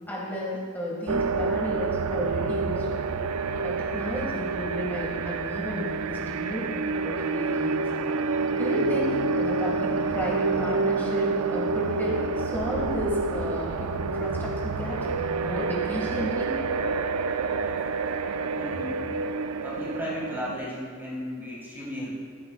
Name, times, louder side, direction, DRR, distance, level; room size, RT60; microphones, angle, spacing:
voice 1, 0.1-2.9 3.6-7.9 8.6-16.5, equal, 10° left, -5 dB, 2.0 m, -32 dB
sound 1, 1.1-20.5, right 4 dB, 80° right, 0.4 m, -28 dB
voice 2, 18.6-19.1 19.6-22.1, left 1 dB, 10° right, -6 dB, 2.0 m, -35 dB
13.5 x 12.0 x 2.4 m, 2.1 s
head